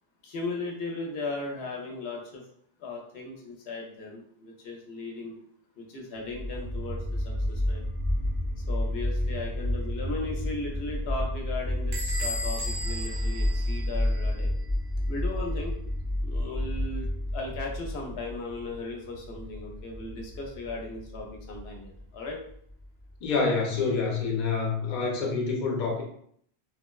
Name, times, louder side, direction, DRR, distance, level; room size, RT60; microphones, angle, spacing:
voice 1, 0.2-2.5 2.8-5.4 5.8-7.8 8.6-14.5 15.1-15.8 16.2-17.1 17.3-22.4, left 3 dB, 85° left, 1 dB, 0.8 m, -37 dB
sound 1, 6.3-23.3, left 1 dB, 20° right, 0.4 m, -31 dB
Bell / Squeak, 11.9-14.4, equal, 60° right, 0.7 m, -36 dB
voice 2, 23.2-26.0, left 4 dB, 50° left, -1 dB, 0.7 m, -27 dB
3.1 x 2.0 x 2.2 m, 0.65 s
omnidirectional pair, 1.0 m